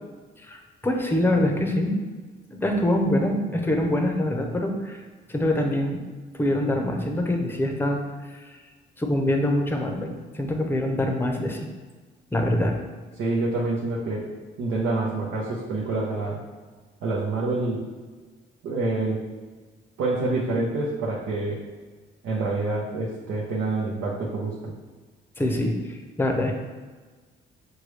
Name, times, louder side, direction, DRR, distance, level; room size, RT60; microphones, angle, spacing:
voice 1, 0.4-2.0 2.5-5.0 5.3-6.0 6.3-8.0 8.3-8.6 9.0-11.7 12.3-12.8 25.4-26.5, left 1 dB, 10° left, 3 dB, 0.7 m, -24 dB
voice 2, 13.2-14.3 14.6-16.4 17.0-17.9 18.6-19.2 20.0-21.6 22.2-24.7, right 2 dB, 80° right, -5 dB, 0.9 m, -27 dB
6.5 x 2.3 x 3.2 m, 1.4 s
cardioid pair, 90°, 20 cm